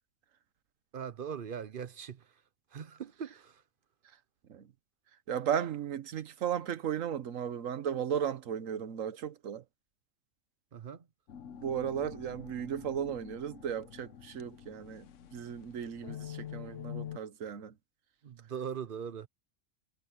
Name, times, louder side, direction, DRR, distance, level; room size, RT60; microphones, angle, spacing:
voice 1, 0.9-2.4 2.7-3.6 10.7-11.1 18.2-19.3, right 7 dB, 50° right, 0.8 m, -41 dB
voice 2, 5.3-9.6 11.6-15.0 15.3-17.7, right 8 dB, 85° right, 1.3 m, -35 dB
sound 1, 11.3-17.2, left 10 dB, 70° left, 1.2 m, -46 dB
omnidirectional pair, 1.3 m